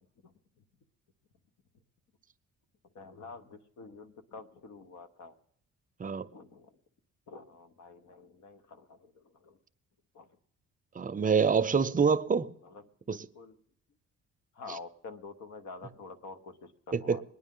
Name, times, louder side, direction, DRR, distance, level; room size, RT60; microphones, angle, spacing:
voice 1, 2.9-5.3 6.3-6.8 7.3-9.6 10.1-10.3 12.6-13.5 14.5-17.2, left 4 dB, 70° left, 1.1 m, -48 dB
voice 2, 11.0-12.5 13.1-13.2 16.9-17.2, right 6 dB, 25° right, 0.6 m, -26 dB
22.5 x 9.6 x 3.8 m
cardioid pair, 90°, 30 cm